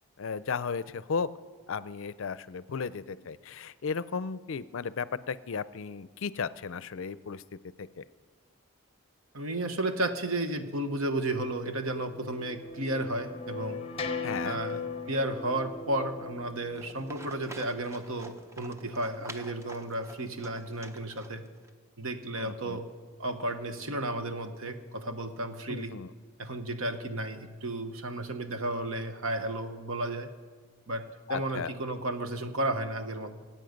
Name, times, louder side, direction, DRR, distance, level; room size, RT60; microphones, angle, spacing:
voice 1, 0.2-1.3 1.7-7.4 7.8-8.0 14.2-14.6 22.4-22.8 25.7-26.1 31.3-31.7, left 5 dB, 65° left, 16 dB, 0.5 m, -35 dB
voice 2, 9.3-13.8 14.4-14.8 15.1-21.4 22.0-22.9 23.2-26.0 26.4-30.3 30.9-33.4, right 1 dB, 75° right, 8 dB, 1.1 m, -33 dB
sound 1, 11.9-17.7, left 4 dB, 25° left, 0.9 m, -39 dB
Livestock farm animals working animals, 16.7-21.7, right 1 dB, 15° right, 0.6 m, -48 dB
24.5 x 8.9 x 5.2 m, 1.5 s
head